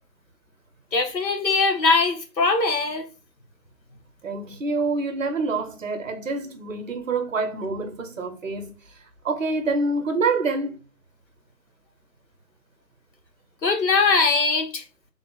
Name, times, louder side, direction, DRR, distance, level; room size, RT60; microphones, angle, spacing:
voice 1, 0.9-3.1 13.6-14.8, left 4 dB, 85° left, 0.9 m, -21 dB
voice 2, 4.2-8.7 9.2-10.8, right 3 dB, 50° right, 0.6 m, -26 dB
3.3 x 2.0 x 3.5 m
figure-of-eight pair, 150°, 50 cm